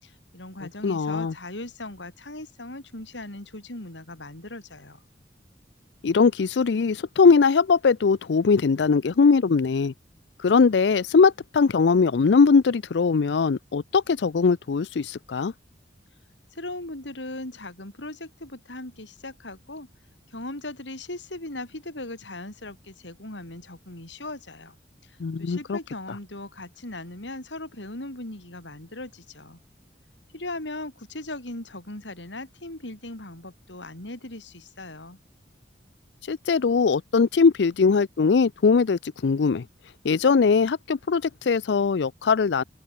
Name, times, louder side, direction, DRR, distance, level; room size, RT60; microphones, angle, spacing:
voice 1, 0.0-5.0 16.5-19.9 20.3-24.8 25.4-29.6 30.3-35.2, left 2 dB, 90° left, 5.0 m, -38 dB
voice 2, 0.8-1.3 6.0-9.9 10.4-15.5 25.2-25.8 36.3-39.6 40.0-42.6, left 5 dB, 70° left, 0.5 m, -21 dB
open air
head